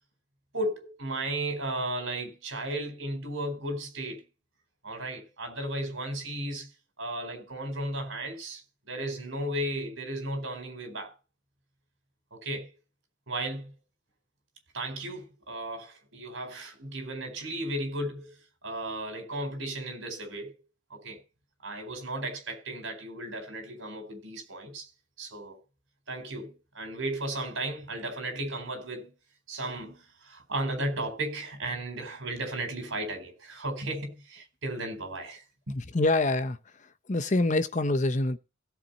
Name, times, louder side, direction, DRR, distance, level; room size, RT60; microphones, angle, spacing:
voice 1, 0.5-4.2 4.8-6.7 7.0-8.6 8.9-11.1 12.3-12.7 13.3-13.7 14.7-18.3 18.6-20.5 20.9-21.2 21.6-24.9 25.2-25.6 26.1-29.1 29.5-30.0 30.2-35.4 35.7-35.8, right 1 dB, 70° right, 4.3 m, -35 dB
voice 2, 35.7-38.4, left 2 dB, 35° left, 0.7 m, -26 dB
16.5 x 7.2 x 4.2 m
head